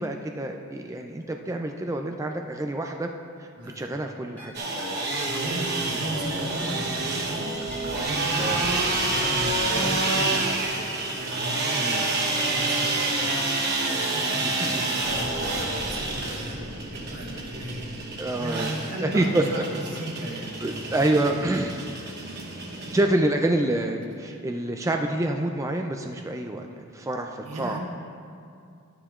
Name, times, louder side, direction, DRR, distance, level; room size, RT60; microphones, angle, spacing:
voice 1, 0.0-3.1 3.4-3.5 3.8-4.5 8.4-8.6 9.7-9.9 11.7-12.0 14.4-14.9 18.2-18.7 19.0-19.6 20.6-21.7 22.9-27.8, right 1 dB, 15° right, 3 dB, 0.3 m, -27 dB
sound 1, 4.4-4.5 4.8-4.9 5.2-5.3 5.6-5.7 5.9-6.0 6.3-18.4, left 1 dB, 10° left, 1.4 m, -42 dB
sound 2, 4.5-23.0, right 2 dB, 45° right, 1.0 m, -28 dB
voice 2, 5.3-10.6 11.1-13.4 14.0-17.8 18.4-21.4 27.4-27.8, right 1 dB, 80° right, -2 dB, 1.6 m, -36 dB
13.0 x 9.9 x 2.4 m, 2.4 s
head